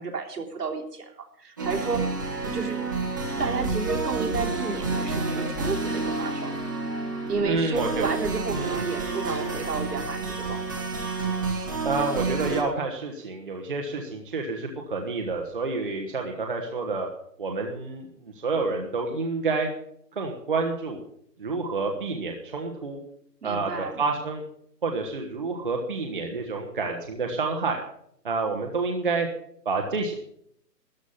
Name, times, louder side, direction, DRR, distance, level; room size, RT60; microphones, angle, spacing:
voice 1, 0.0-2.0 2.5-2.8 3.4-6.6 7.3-10.2 10.5-10.8 23.4-24.0, right 4 dB, 70° right, 1 dB, 3.5 m, -31 dB
sound 1, 1.6-12.6, right 3 dB, 10° right, 1.2 m, -29 dB
voice 2, 7.4-8.1 8.5-8.9 11.8-17.1 17.4-19.7 20.1-21.0 21.4-23.0 23.4-24.4 24.8-27.8 28.2-29.3 29.6-30.1, right 3 dB, 30° right, 2 dB, 1.3 m, -29 dB
13.5 x 11.5 x 5.6 m, 0.69 s
hypercardioid pair, 180°, 50 cm